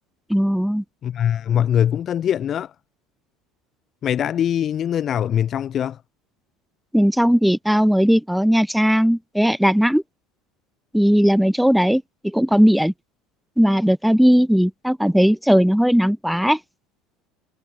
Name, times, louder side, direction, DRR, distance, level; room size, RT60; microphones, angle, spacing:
voice 1, 0.3-0.8 6.9-10.0 10.9-12.9 13.6-16.6, equal, ahead, 0.9 m, -17 dB
voice 2, 1.0-2.7 4.0-6.0, left 9 dB, 40° left, 2.0 m, -22 dB
supercardioid pair, 100°, 0 cm